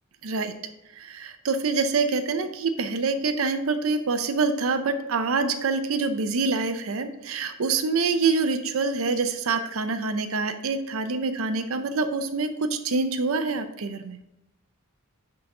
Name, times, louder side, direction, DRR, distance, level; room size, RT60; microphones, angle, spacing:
voice 1, 0.2-0.5 0.9-14.2, right 4 dB, 70° right, 8 dB, 0.6 m, -26 dB
10.5 x 3.9 x 3.7 m, 0.89 s
head